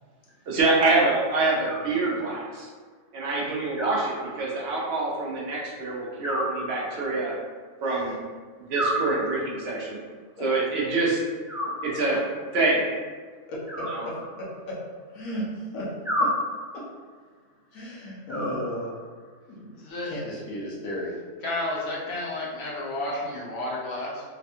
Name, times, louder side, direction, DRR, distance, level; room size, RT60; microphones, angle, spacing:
voice 1, 0.5-2.7 3.1-7.3 7.8-8.1 8.7-10.0 10.4-11.2 11.8-12.2 12.5-12.8 13.9-14.0, right 3 dB, 60° right, -3 dB, 0.8 m, -25 dB
Animal, 1.6-2.5 3.8-4.8 6.2-7.3 8.7-9.7 11.5-12.4 13.7-14.8 16.0-17.0 18.3-19.2, equal, 5° right, 0.6 m, -32 dB
voice 2, 13.5-14.8 15.1-15.9 16.2-16.3 16.7-16.8 17.7-18.9 19.5-19.7 20.0-21.2, equal, 90° left, -5 dB, 1.1 m, -34 dB
voice 3, 19.7-20.1 21.4-24.2, left 1 dB, 60° left, -4 dB, 0.8 m, -31 dB
3.2 x 2.2 x 2.7 m, 1.5 s
omnidirectional pair, 1.4 m